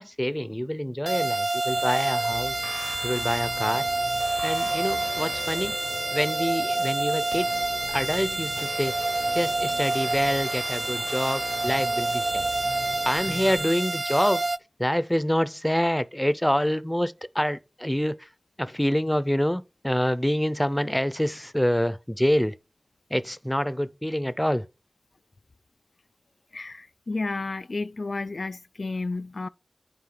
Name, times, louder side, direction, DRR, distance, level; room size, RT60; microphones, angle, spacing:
voice 1, 0.0-2.6 3.0-3.9 4.4-5.8 6.1-8.9 9.3-12.5 13.0-14.4 14.8-18.3 18.6-22.5 23.1-24.6, equal, 10° left, 0.5 m, -26 dB
sound 1, 1.1-14.6, right 2 dB, 55° right, 0.4 m, -28 dB
sound 2, 1.7-13.6, left 2 dB, 55° left, 0.7 m, -41 dB
voice 2, 26.5-29.5, left 3 dB, 80° left, 0.3 m, -32 dB
8.5 x 4.9 x 3.8 m
wide cardioid pair, 60°, 0 cm